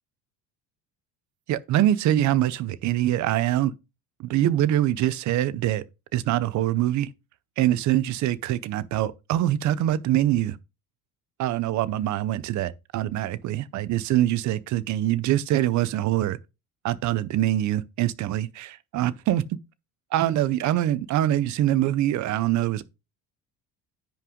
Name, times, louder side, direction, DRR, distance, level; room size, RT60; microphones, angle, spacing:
voice 1, 1.5-3.7 4.2-5.8 6.1-7.1 7.6-10.6 11.4-16.4 16.8-19.4 20.1-22.8, right 13 dB, 50° right, 0.7 m, -24 dB
10.0 x 5.7 x 3.8 m
cardioid pair, 165°, 38 cm